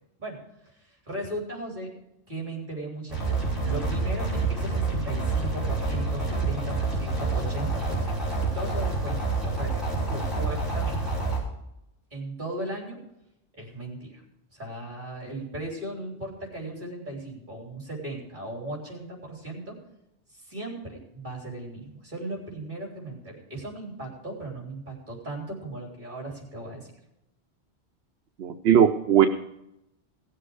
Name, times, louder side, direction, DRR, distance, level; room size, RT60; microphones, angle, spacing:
voice 1, 0.6-1.9 2.3-11.0 12.1-13.0 13.5-14.2 14.5-19.7 20.3-26.9, right 1 dB, 45° right, -2 dB, 3.9 m, -37 dB
sound 1, 3.1-11.4, right 3 dB, ahead, 5.6 m, -27 dB
voice 2, 28.4-29.3, right 9 dB, 80° right, 6 dB, 1.0 m, -19 dB
17.0 x 7.7 x 4.8 m, 0.85 s
omnidirectional pair, 1.1 m